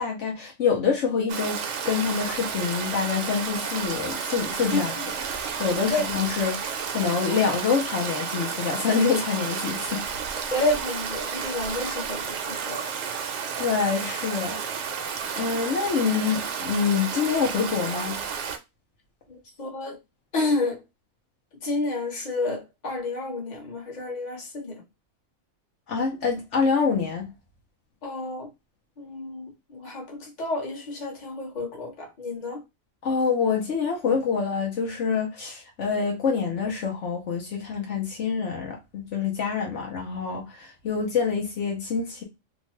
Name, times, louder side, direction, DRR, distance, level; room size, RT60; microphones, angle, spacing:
voice 1, 0.0-4.9 5.3-10.1 13.6-14.9 15.4-18.1 25.9-27.3 33.0-42.2, left 5 dB, 70° left, 1.0 m, -26 dB
Stream, 1.3-18.6, right 6 dB, 70° right, 0.9 m, -31 dB
voice 2, 10.5-12.9 19.3-20.0 20.3-20.8 21.6-24.8 28.0-28.5 29.0-32.6, left 2 dB, 35° left, 1.1 m, -30 dB
2.9 x 2.2 x 3.0 m
omnidirectional pair, 1.3 m